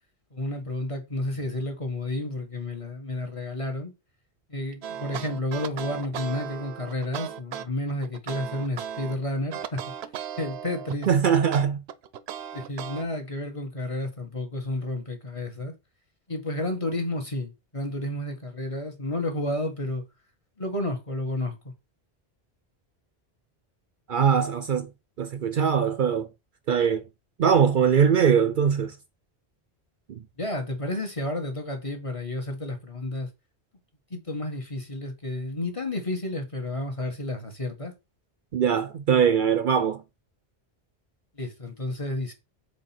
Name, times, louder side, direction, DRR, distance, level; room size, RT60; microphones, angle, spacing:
voice 1, 0.3-3.9 4.5-9.8 10.4-11.1 12.5-15.7 16.3-20.0 20.6-21.7 30.4-33.3 34.1-37.9 41.4-42.3, left 1 dB, 30° left, 1.5 m, -31 dB
sound 1, 4.8-9.1 9.5-11.1 11.5-13.0, right 9 dB, 80° right, 0.9 m, -36 dB
voice 2, 11.1-11.8 24.1-24.9 25.2-26.3 26.7-27.0 27.4-28.9 30.1-30.2 38.5-40.0, right 7 dB, 60° right, 0.7 m, -21 dB
5.1 x 4.2 x 5.9 m
omnidirectional pair, 1.1 m